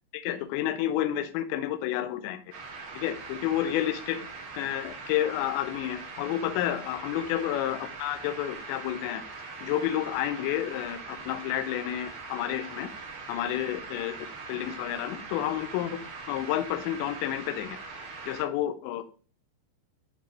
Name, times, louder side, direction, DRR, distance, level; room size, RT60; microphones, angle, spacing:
voice 1, 0.1-2.4 3.0-4.2 4.6-9.2 9.6-12.9 13.3-14.2 14.5-16.0 16.3-17.8 18.3-19.1, left 12 dB, 80° left, 9 dB, 2.8 m, -30 dB
sound 1, 2.5-18.4, right 4 dB, 55° right, 3.5 m, -42 dB
10.5 x 3.7 x 3.0 m, 0.39 s
omnidirectional pair, 5.4 m